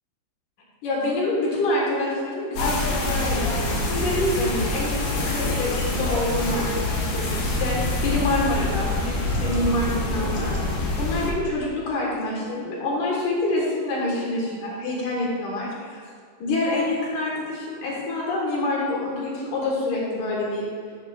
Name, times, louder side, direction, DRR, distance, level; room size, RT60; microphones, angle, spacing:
voice 1, 0.8-16.0 16.4-20.7, left 2 dB, 60° left, -4 dB, 2.5 m, -27 dB
sound 1, 2.5-11.3, left 2 dB, 85° left, 1.3 m, -25 dB
10.5 x 10.5 x 2.4 m, 2.1 s
omnidirectional pair, 4.9 m